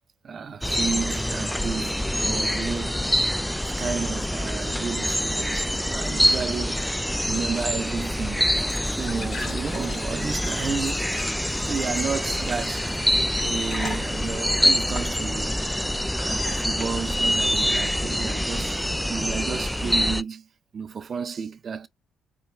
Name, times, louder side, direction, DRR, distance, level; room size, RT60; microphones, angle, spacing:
voice 1, 0.2-3.1 3.6-6.9 7.3-8.5 8.9-11.4 11.6-12.9 13.4-15.7 16.3-18.8 19.1-20.5 20.7-21.9, right 6 dB, 50° right, 0.5 m, -32 dB
sound 1, 0.6-20.2, equal, 5° left, 0.3 m, -25 dB
Glass / Trickle dribble / Fill (with liquid), 8.3-15.1, left 3 dB, 50° left, 2.1 m, -40 dB
4.8 x 2.2 x 3.1 m
hypercardioid pair, 50°, 0 cm